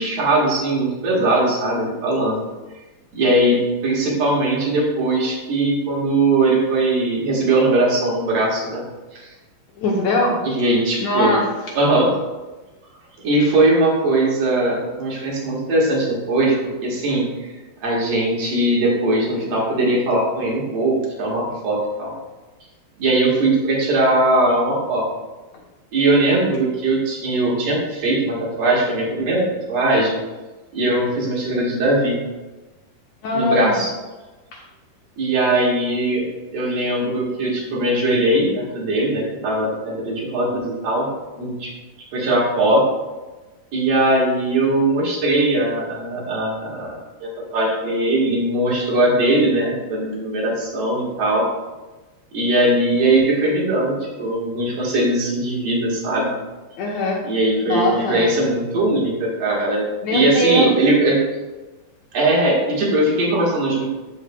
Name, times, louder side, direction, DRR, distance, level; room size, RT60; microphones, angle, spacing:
voice 1, 0.0-2.4 3.1-8.9 9.1-9.3 10.4-11.3 11.7-12.1 13.2-17.5 17.8-22.1 23.0-25.0 25.9-30.2 30.7-32.2 33.3-33.9 35.2-36.2 36.5-41.1 41.4-41.7 42.1-42.8 43.7-46.9 47.2-51.4 52.3-56.3 57.2-59.8 60.1-61.2 62.1-63.8, right 2 dB, 55° right, -3 dB, 2.3 m, -20 dB
voice 2, 9.8-10.4 11.0-11.5 33.2-33.8 34.5-34.6 56.8-57.2 57.7-58.3 60.0-60.7, left 1 dB, 85° left, -3 dB, 1.5 m, -21 dB
13.0 x 4.9 x 2.2 m, 1.2 s
omnidirectional pair, 4.3 m